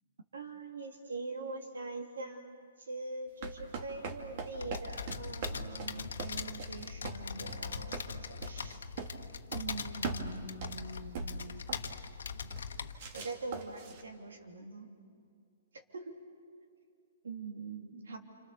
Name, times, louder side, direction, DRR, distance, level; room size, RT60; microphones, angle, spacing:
voice 1, 0.3-2.6 2.9-8.8 9.5-11.6 13.1-14.9 15.7-16.1 17.2-18.2, right 3 dB, 85° right, 3 dB, 3.2 m, -43 dB
sound 1, 3.4-9.2 9.5-9.8 10.0-10.9 11.1-12.0 12.5-12.7 13.0-14.0, right 4 dB, 50° right, 2.4 m, -41 dB
sound 2, 4.6-13.2, left 6 dB, 80° left, 1.2 m, -41 dB
28.0 x 26.0 x 6.9 m, 2.3 s
hypercardioid pair, 140°, 0 cm